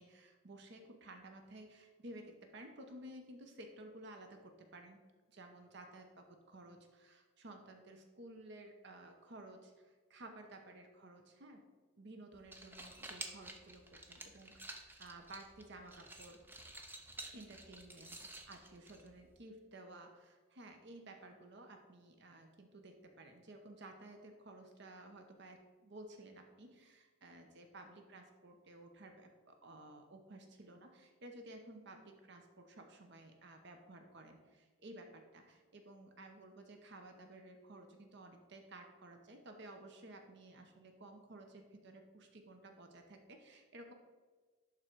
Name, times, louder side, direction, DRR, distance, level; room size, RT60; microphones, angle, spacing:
voice 1, 0.0-16.4 17.3-43.9, right 1 dB, 55° right, 4 dB, 0.8 m, -55 dB
sound 1, 12.3-19.4, right 2 dB, 10° right, 0.6 m, -51 dB
11.0 x 3.7 x 4.5 m, 1.4 s
head